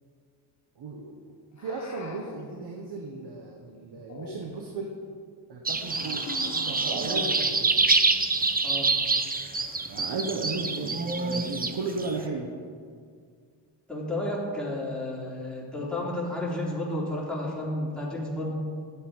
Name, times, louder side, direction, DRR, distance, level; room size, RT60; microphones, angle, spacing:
voice 1, 0.8-1.2 1.5-4.9 5.5-7.8 9.9-12.5, right 3 dB, 65° right, 1 dB, 1.3 m, -35 dB
Monster Hissing, 1.6-2.5 4.0-4.7 5.8-6.8 8.1-8.5 9.4-10.1, left 4 dB, 40° left, 1.4 m, -44 dB
sound 1, 5.6-12.1, right 3 dB, 20° right, 0.8 m, -26 dB
voice 2, 13.9-18.5, left 1 dB, ahead, -5 dB, 3.2 m, -32 dB
12.5 x 9.0 x 5.0 m, 2.1 s
cardioid pair, 90°, 44 cm